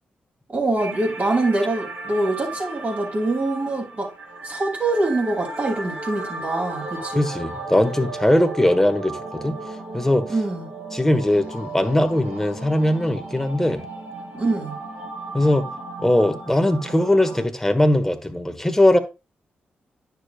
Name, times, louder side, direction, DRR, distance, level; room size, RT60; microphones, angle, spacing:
voice 1, 0.5-4.1 4.4-7.3 10.3-10.7 14.3-14.8, right 2 dB, 45° right, 3.1 m, -24 dB
sound 1, 0.8-17.4, right 2 dB, 75° right, 4.0 m, -35 dB
voice 2, 7.1-9.6 9.9-10.3 10.9-13.8 15.3-15.7 16.0-19.0, left 1 dB, 10° left, 1.5 m, -20 dB
9.8 x 6.7 x 2.4 m
supercardioid pair, 50°, 4 cm